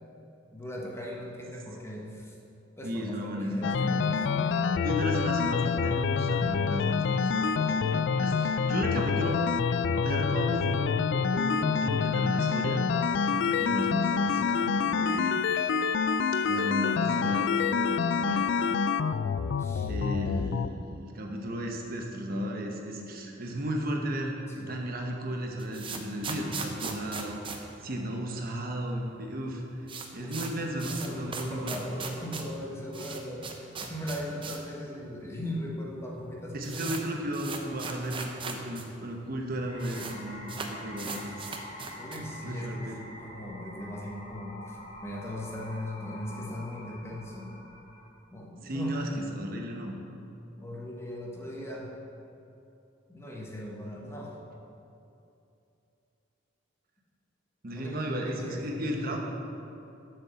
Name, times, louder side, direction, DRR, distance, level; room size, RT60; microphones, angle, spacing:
voice 1, 0.5-2.4 2.8-4.9 19.6-19.9 24.5-24.8 30.2-30.4 30.9-36.8 41.0-41.4 41.9-47.5 48.3-49.0 50.6-51.9 53.1-54.3 57.7-59.2, equal, 15° left, -2 dB, 1.2 m, -39 dB
voice 2, 2.8-4.2 4.8-9.6 9.9-12.8 13.3-15.4 16.5-18.8 19.9-24.4 24.7-29.9 30.1-31.8 36.5-41.3 41.7-41.9 42.4-43.0 48.6-49.9 57.6-59.2, equal, 50° right, 1 dB, 1.0 m, -34 dB
sound 1, 3.6-20.7, left 5 dB, 65° left, 0.3 m, -27 dB
sound 2, 25.3-28.6 28.8-28.9 29.2-29.3 29.6-34.7 35.0-35.1 35.8-35.9 36.2-38.9 39.1-39.2 39.4-40.2 40.5-42.4, right 4 dB, 25° right, 0.7 m, -39 dB
sound 3, 39.7-48.1, left 1 dB, 35° left, 1.2 m, -46 dB
7.9 x 6.7 x 6.9 m, 2.8 s
head